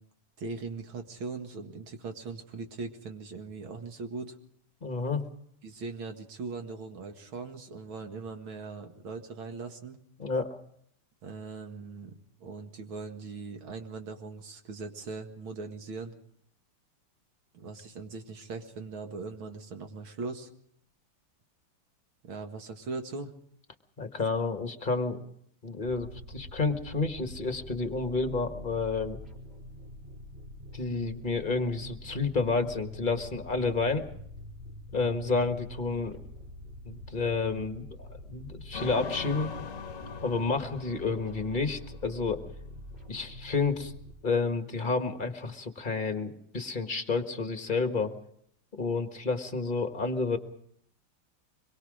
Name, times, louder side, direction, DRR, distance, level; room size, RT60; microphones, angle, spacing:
voice 1, 0.4-4.4 5.6-10.0 11.2-16.1 17.5-20.5 22.2-23.4, right 4 dB, 70° right, 5 dB, 2.6 m, -40 dB
voice 2, 4.8-5.2 10.2-10.6 24.0-25.2 25.6-29.2 30.7-34.1 34.9-36.2 36.8-39.5 40.2-42.4 43.1-43.9 44.2-48.1 48.8-50.4, left 4 dB, 25° left, 6 dB, 1.4 m, -30 dB
sound 1, 25.8-44.1, left 1 dB, 25° right, 4.7 m, -46 dB
sound 2, 38.7-42.1, left 6 dB, 45° left, 1.3 m, -41 dB
24.5 x 22.5 x 5.0 m, 0.68 s
omnidirectional pair, 2.4 m